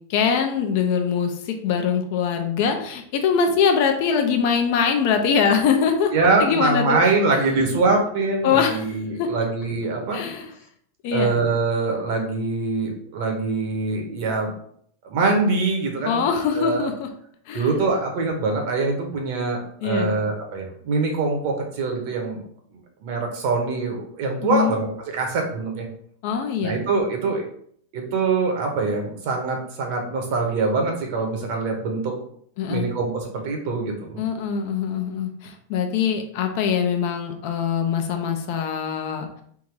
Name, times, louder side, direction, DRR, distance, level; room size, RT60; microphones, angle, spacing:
voice 1, 0.1-6.1 6.4-7.0 8.4-8.9 9.2-9.3 10.1-10.5 11.0-11.3 16.0-17.1 17.5-17.7 19.8-20.1 24.4-24.7 26.2-26.8 32.6-32.9 34.2-39.4, left 6 dB, 50° left, 5 dB, 0.7 m, -23 dB
voice 2, 6.1-10.2 11.1-14.5 15.1-16.3 16.6-16.9 17.5-22.4 23.0-24.9 25.1-25.9 26.6-27.5 27.9-32.1 32.7-34.2, right 3 dB, 50° right, 2 dB, 1.2 m, -23 dB
3.6 x 2.7 x 4.7 m, 0.64 s
supercardioid pair, 160°, 0 cm